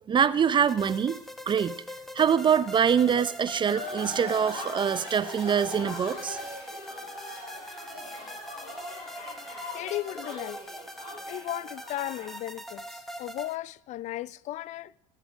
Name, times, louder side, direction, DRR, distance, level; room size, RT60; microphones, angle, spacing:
voice 1, 0.1-1.2 1.5-1.8 2.1-6.4, right 7 dB, 30° right, 0.6 m, -24 dB
sound 1, 0.7-13.6, equal, ahead, 1.0 m, -42 dB
sound 2, 3.6-12.4, left 1 dB, 70° left, 6.5 m, -41 dB
voice 2, 9.7-10.6 11.3-14.9, left 15 dB, 50° left, 0.4 m, -35 dB
19.5 x 7.4 x 5.1 m
supercardioid pair, 100°, 16 cm